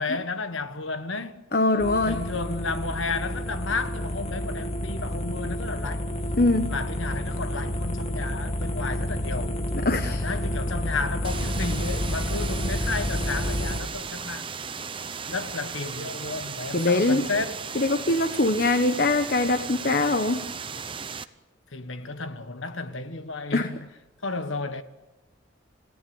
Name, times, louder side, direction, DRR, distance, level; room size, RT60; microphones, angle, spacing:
voice 1, 0.0-1.4 2.0-6.1 6.7-9.6 10.0-14.5 15.3-17.6 21.7-23.9 24.2-24.8, left 3 dB, 80° left, 1.5 m, -32 dB
voice 2, 1.5-2.2 6.4-6.7 9.7-10.2 16.7-17.3 17.7-20.5 23.5-23.7, left 2 dB, 45° left, 1.2 m, -23 dB
sound 1, 1.8-13.8, left 1 dB, 30° left, 1.9 m, -30 dB
sound 2, 11.2-21.2, right 6 dB, 25° right, 0.8 m, -36 dB
28.0 x 18.0 x 7.1 m
head